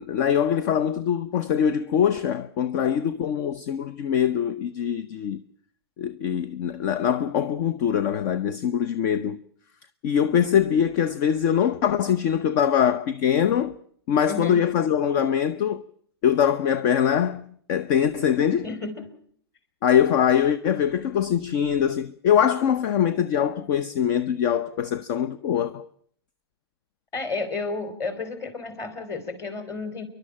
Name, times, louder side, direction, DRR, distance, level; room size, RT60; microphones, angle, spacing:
voice 1, 0.0-5.4 6.0-9.4 10.0-13.8 14.1-15.8 16.2-18.7 19.8-25.9, left 8 dB, 45° left, 0.8 m, -23 dB
voice 2, 14.3-14.6 18.6-19.1 27.1-30.0, left 3 dB, 25° left, 3.6 m, -32 dB
27.5 x 12.0 x 8.6 m
hypercardioid pair, 130°, 13 cm